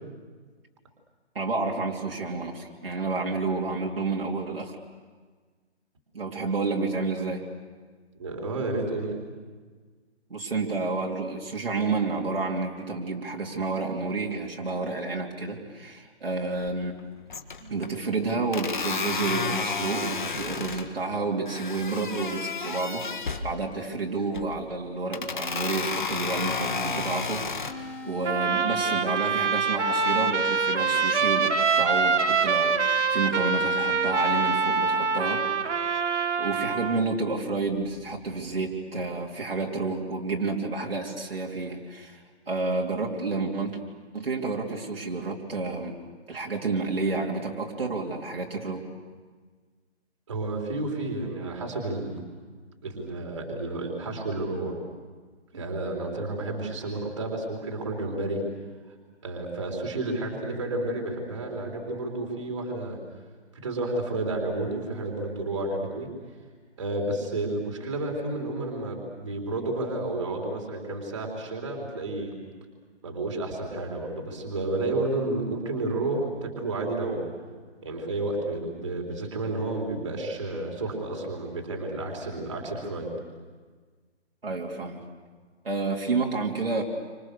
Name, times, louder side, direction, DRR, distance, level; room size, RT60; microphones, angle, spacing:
voice 1, 1.3-4.7 6.1-7.4 10.3-16.9 17.6-23.1 23.4-27.5 28.0-35.4 36.4-43.8 44.1-46.0 46.3-48.8 55.5-55.6 84.4-85.0 85.6-86.8, right 3 dB, 55° right, -1 dB, 3.3 m, -30 dB
voice 2, 8.2-9.1 50.3-52.2 52.8-54.8 55.5-58.4 59.2-63.0 63.5-66.1 66.8-72.3 73.0-77.2 77.8-83.1, right 2 dB, 25° right, 0 dB, 3.8 m, -31 dB
sound 1, 16.6-17.0 17.3-17.9 18.5-20.9 21.5-23.5 24.2-24.6 25.1-27.7, left 5 dB, 45° left, 1.8 m, -31 dB
sound 2, 27.7-33.4 33.7-38.8, left 1 dB, 85° left, 3.2 m, -47 dB
Trumpet, 28.3-37.0, right 5 dB, 85° right, 1.7 m, -25 dB
30.0 x 25.5 x 6.7 m, 1.5 s
hypercardioid pair, 180°, 34 cm